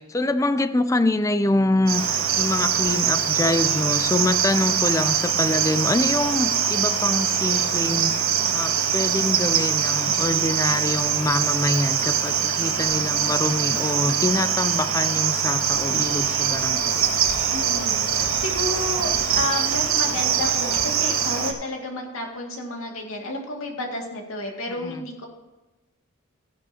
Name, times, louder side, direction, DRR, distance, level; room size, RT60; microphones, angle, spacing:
voice 1, 0.0-17.1 24.7-25.0, left 2 dB, 15° left, 12 dB, 0.4 m, -25 dB
Cricket, 1.9-21.5, right 8 dB, 85° right, 1.4 m, -23 dB
voice 2, 17.5-25.3, left 2 dB, 85° left, 1 dB, 2.3 m, -31 dB
15.0 x 10.5 x 2.9 m, 1.2 s
head